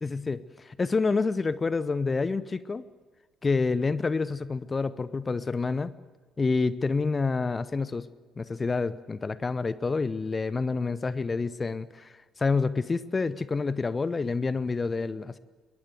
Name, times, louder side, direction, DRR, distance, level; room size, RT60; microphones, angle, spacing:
voice 1, 0.0-2.8 3.4-5.9 6.4-8.1 8.4-12.1 12.4-15.4, left 4 dB, 30° left, 17 dB, 0.8 m, -28 dB
22.0 x 18.5 x 7.9 m, 1.4 s
figure-of-eight pair, 50°, 0 cm